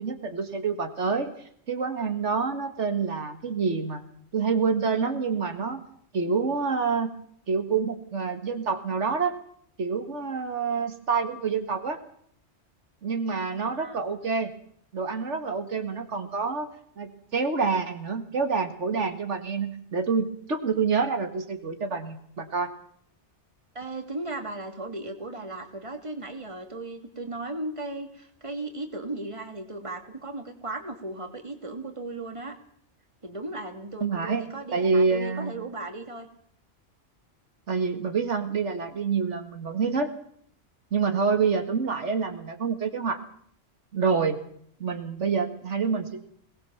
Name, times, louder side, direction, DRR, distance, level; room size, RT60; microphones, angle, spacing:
voice 1, 0.0-1.3 1.7-4.0 4.3-5.8 6.1-7.1 7.5-9.3 9.8-12.0 13.0-14.5 14.9-16.7 17.0-22.7 34.0-35.5 37.7-40.1 40.9-43.2 43.9-44.4 44.8-46.2, right 5 dB, 80° right, 7 dB, 2.1 m, -27 dB
voice 2, 13.6-14.0 23.7-32.5 33.2-36.3, right 2 dB, 25° right, 5 dB, 2.5 m, -36 dB
21.0 x 19.0 x 7.1 m, 0.64 s
omnidirectional pair, 1.2 m